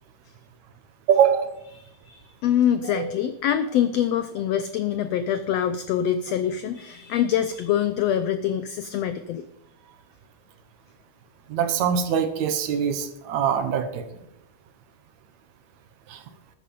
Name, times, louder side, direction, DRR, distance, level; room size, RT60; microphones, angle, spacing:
voice 1, 1.1-1.5 2.8-3.1 11.5-14.0 16.1-16.2, right 8 dB, 70° right, 9 dB, 2.2 m, -23 dB
voice 2, 1.7-9.5, left 10 dB, 90° left, 11 dB, 1.4 m, -25 dB
13.0 x 8.8 x 5.3 m, 0.84 s
omnidirectional pair, 3.6 m